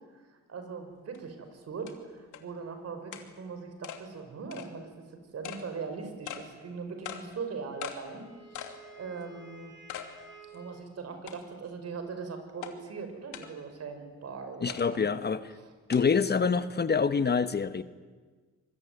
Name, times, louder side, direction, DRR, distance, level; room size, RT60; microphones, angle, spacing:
voice 1, 0.5-4.9 5.3-9.7 10.5-15.2 15.6-15.7, right 5 dB, 55° right, 7 dB, 5.9 m, -40 dB
sound 1, 1.1-1.2 1.9-2.0 2.3-2.4 3.1-3.3 3.8-4.0 4.5-4.7 5.4-5.6 6.3-6.4 7.0-7.2 7.8-8.0 8.5-8.8 9.2-9.3 9.9-10.1 10.5-10.6 11.3-11.7 12.6-12.7 13.3-13.5 14.7-14.9 15.9-16.0, left 10 dB, 80° left, 2.8 m, -40 dB
Wind instrument woodwind instrument, 7.7-10.9, right 5 dB, 40° right, 6.8 m, -53 dB
voice 2, 14.6-15.5 15.9-17.8, left 5 dB, 35° left, 12 dB, 1.1 m, -26 dB
25.5 x 21.5 x 9.7 m, 1.4 s
cardioid pair, 90°, 30 cm